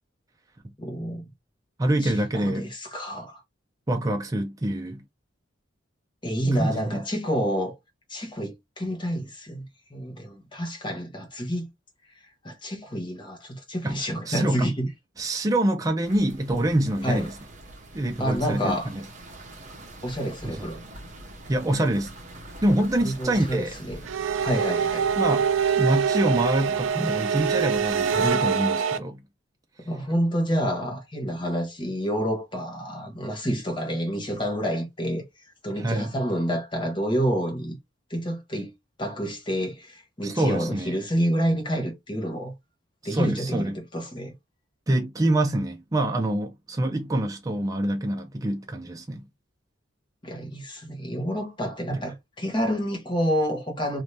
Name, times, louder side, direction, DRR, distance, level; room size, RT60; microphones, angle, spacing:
voice 1, 0.8-1.3 2.0-3.4 6.2-7.7 8.1-11.7 12.4-14.9 17.0-17.3 18.2-18.9 20.0-20.8 23.0-24.0 24.4-25.1 29.8-35.2 35.6-37.8 38.1-38.7 39.0-42.5 43.0-44.3 50.2-54.0, equal, 25° left, 1.0 m, -28 dB
voice 2, 1.8-2.7 3.9-5.0 6.6-7.0 13.8-14.0 14.3-14.7 15.2-17.3 17.9-19.0 20.4-20.7 21.5-22.1 22.6-23.7 25.2-25.5 25.8-29.2 35.8-36.1 40.2-41.0 43.0-43.8 44.9-49.3 51.9-52.0, right 1 dB, 20° right, 0.4 m, -25 dB
sound 1, 16.0-28.3, right 1 dB, 40° right, 0.9 m, -43 dB
sound 2, 24.1-29.0, right 7 dB, 80° right, 0.4 m, -24 dB
2.7 x 2.6 x 3.2 m
head